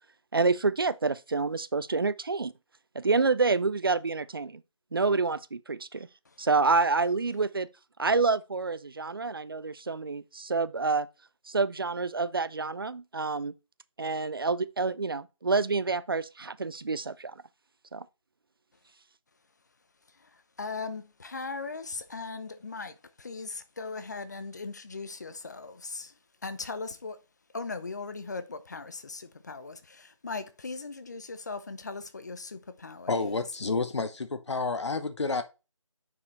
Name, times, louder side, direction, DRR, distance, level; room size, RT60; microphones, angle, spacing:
voice 1, 0.3-2.5 2.9-4.6 4.9-6.1 6.4-7.7 8.0-11.1 11.5-13.5 14.0-17.3 17.9-18.0, right 4 dB, 45° right, 0.4 m, -28 dB
voice 2, 20.1-27.2 27.5-33.3, left 4 dB, 35° left, 0.7 m, -39 dB
voice 3, 33.1-35.4, left 3 dB, 60° left, 1.0 m, -30 dB
9.5 x 4.8 x 3.2 m
figure-of-eight pair, 165°, 17 cm